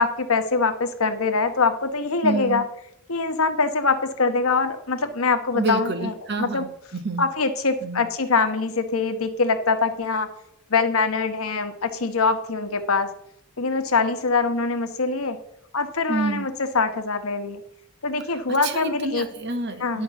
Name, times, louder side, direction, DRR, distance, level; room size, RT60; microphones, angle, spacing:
voice 1, 0.0-2.6 3.1-6.1 6.4-6.6 7.2-10.3 10.7-13.1 13.6-15.4 15.7-17.6 18.0-19.3 19.8-20.0, left 4 dB, 85° left, 8 dB, 1.1 m, -23 dB
voice 2, 2.2-2.6 5.5-7.3 7.8-8.1 16.1-16.5 18.2-20.0, right 3 dB, 55° right, 8 dB, 1.2 m, -28 dB
10.5 x 5.2 x 6.9 m, 0.76 s
head